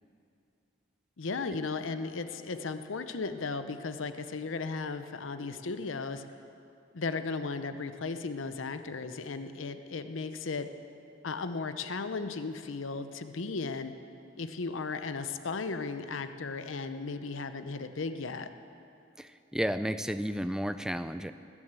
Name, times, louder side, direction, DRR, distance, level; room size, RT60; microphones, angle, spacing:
voice 1, 1.2-6.3 6.9-10.7 11.2-13.9 14.4-18.5, left 4 dB, 75° left, 10 dB, 0.7 m, -35 dB
voice 2, 19.2-21.3, equal, 5° right, 11 dB, 0.4 m, -32 dB
19.5 x 7.2 x 8.1 m, 2.6 s
head